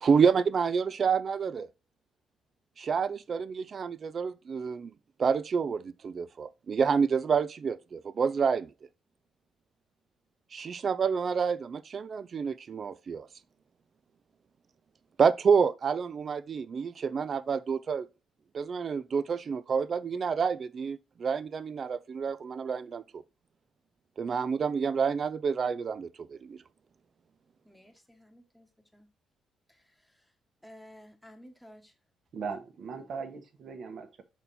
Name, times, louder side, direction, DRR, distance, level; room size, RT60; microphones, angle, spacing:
voice 1, 0.0-1.7 2.8-4.9 5.2-8.7 10.5-13.3 15.2-18.1 18.5-23.2 24.2-26.6, right 6 dB, 45° right, 0.4 m, -28 dB
voice 2, 27.6-29.1 29.7-30.3 30.6-31.9 32.9-33.1, equal, 5° left, 1.1 m, -54 dB
voice 3, 32.3-34.2, right 5 dB, 65° right, 1.2 m, -39 dB
5.4 x 4.4 x 4.1 m
cardioid pair, 90°, 0 cm